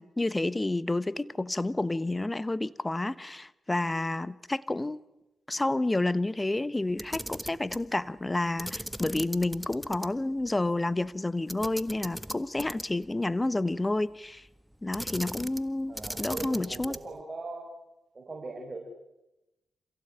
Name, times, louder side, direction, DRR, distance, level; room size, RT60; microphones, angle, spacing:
voice 1, 0.0-5.0 5.5-14.5 14.8-16.9, left 2 dB, 20° left, 1.1 m, -30 dB
Camera, 6.9-7.9 8.6-10.1 10.4-10.5 11.5-13.1 14.9-15.7 15.9-17.2, equal, 5° right, 1.6 m, -38 dB
voice 2, 15.9-17.8 18.1-18.8, right 2 dB, 40° right, 5.5 m, -40 dB
27.0 x 16.5 x 9.2 m
supercardioid pair, 45°, 0 cm